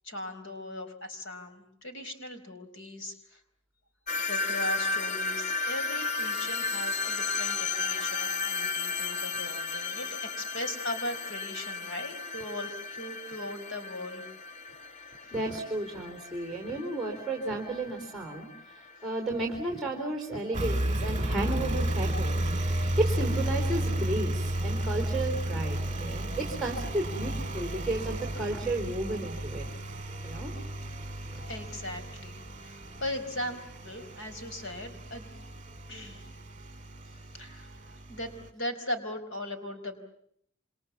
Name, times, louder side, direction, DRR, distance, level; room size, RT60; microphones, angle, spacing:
voice 1, 0.0-3.4 4.2-14.3 15.2-15.4 31.3-35.3 35.9-36.3 37.0-40.0, left 1 dB, 55° left, 8 dB, 4.6 m, -39 dB
sound 1, 4.1-19.0, left 4 dB, 35° left, 1.2 m, -34 dB
voice 2, 15.3-29.7 30.2-30.5, right 2 dB, ahead, 1 dB, 4.1 m, -33 dB
Engine, 20.5-38.5, right 1 dB, 35° right, 2.1 m, -33 dB
28.0 x 26.5 x 7.3 m, 0.68 s
head